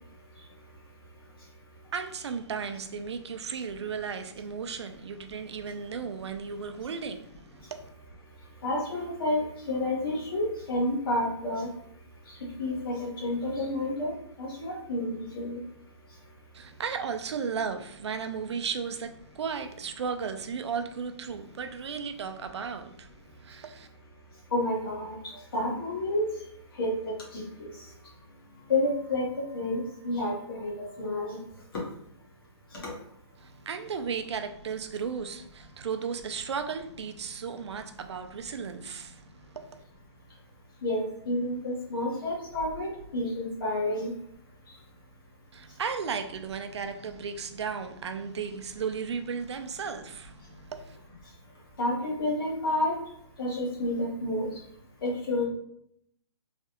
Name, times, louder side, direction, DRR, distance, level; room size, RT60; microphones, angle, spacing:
voice 1, 1.9-7.8 16.5-23.9 33.4-39.8 45.5-51.0, right 6 dB, 70° right, 0.4 m, -35 dB
voice 2, 8.6-11.7 12.6-14.1 14.4-15.6 24.5-25.1 25.5-26.2 26.8-26.9 27.3-27.7 28.7-29.2 29.5-31.4 32.8-32.9 40.8-44.1 51.8-52.9 53.4-54.5 55.0-55.4, left 1 dB, 50° left, 1.3 m, -29 dB
3.2 x 2.3 x 2.9 m
hypercardioid pair, 165°, 15 cm